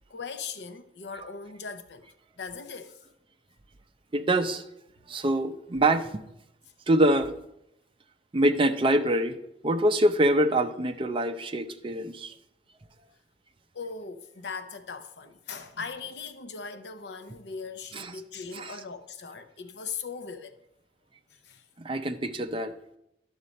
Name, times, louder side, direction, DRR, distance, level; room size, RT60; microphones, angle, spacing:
voice 1, 0.1-2.1 2.4-3.0 13.7-20.6 21.3-21.6, left 5 dB, 70° left, 0.8 m, -39 dB
voice 2, 4.1-4.6 5.1-6.2 6.9-7.3 8.3-9.4 9.6-12.3 17.9-18.1 18.5-18.8 21.8-22.7, right 1 dB, 30° right, 0.6 m, -25 dB
11.5 x 6.6 x 4.1 m
head